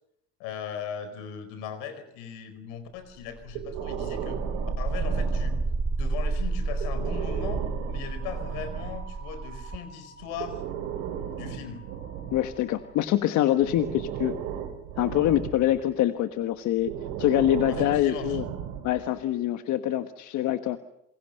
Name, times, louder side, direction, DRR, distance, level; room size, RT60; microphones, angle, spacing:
voice 1, 0.4-4.4 4.8-5.6 6.0-10.6 11.4-11.8 17.7-18.4, left 7 dB, 90° left, 11 dB, 4.7 m, -38 dB
sound 1, 3.2-13.1, right 3 dB, 35° right, 3.6 m, -32 dB
Breathing, 3.5-6.0 6.7-9.1 10.2-13.0 13.6-15.8 16.8-19.1, right 9 dB, 85° right, 4.2 m, -35 dB
voice 2, 12.3-14.4 15.0-18.4 18.8-20.8, left 12 dB, 70° left, 9 dB, 1.4 m, -25 dB
28.0 x 22.5 x 6.6 m, 0.83 s
supercardioid pair, 80°, 30 cm